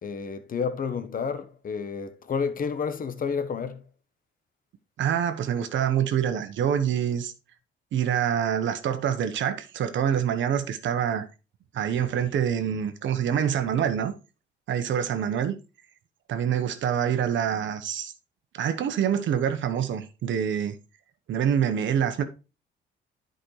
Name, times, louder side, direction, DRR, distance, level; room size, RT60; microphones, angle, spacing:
voice 1, 0.0-3.8, left 6 dB, 45° left, 1.0 m, -30 dB
voice 2, 5.0-7.3 7.9-11.2 11.7-14.1 14.7-15.6 16.3-18.1 18.5-20.7 21.3-22.2, right 8 dB, 70° right, 1.1 m, -26 dB
10.5 x 5.2 x 3.2 m
cardioid pair, 90°, 20 cm